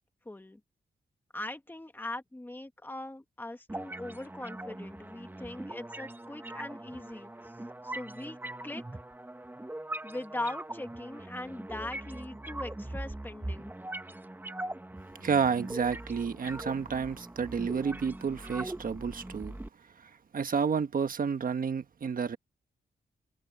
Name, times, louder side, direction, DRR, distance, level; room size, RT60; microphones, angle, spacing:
voice 1, 0.2-0.6 1.3-7.3 7.8-8.8 10.0-13.7, left 1 dB, 10° left, 1.7 m, -40 dB
sound 1, 3.7-19.7, right 1 dB, 10° right, 1.3 m, -41 dB
voice 2, 15.2-19.6 20.3-22.4, right 6 dB, 55° right, 1.3 m, -30 dB
wide cardioid pair, 105°, 18 cm